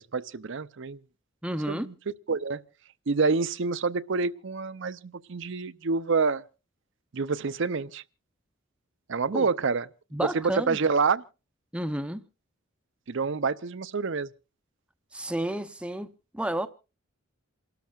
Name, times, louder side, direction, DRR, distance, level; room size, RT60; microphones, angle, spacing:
voice 1, 0.1-1.0 1.7-1.9 2.3-2.6 3.1-6.4 7.1-8.0 9.1-9.9 10.2-11.2 13.1-14.3, right 4 dB, 60° right, 0.6 m, -27 dB
voice 2, 1.4-1.9 9.3-9.5 10.1-10.8 11.7-12.2 15.1-16.7, right 1 dB, 5° right, 0.6 m, -31 dB
28.5 x 13.0 x 2.4 m
head